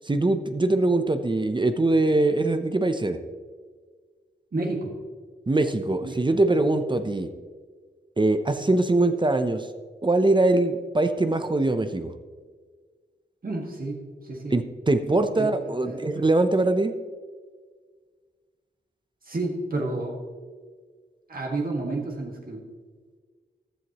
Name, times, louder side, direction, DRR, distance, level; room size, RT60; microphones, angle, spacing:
voice 1, 0.0-3.2 5.5-7.3 8.2-9.7 10.0-12.1 14.5-16.9, right 2 dB, 25° right, 9 dB, 0.7 m, -22 dB
voice 2, 4.5-4.9 6.0-6.3 13.4-14.6 15.3-16.1 19.2-20.2 21.3-22.6, right 2 dB, 50° right, -1 dB, 1.9 m, -31 dB
14.5 x 12.5 x 3.0 m, 1.6 s
wide cardioid pair, 110°, 19 cm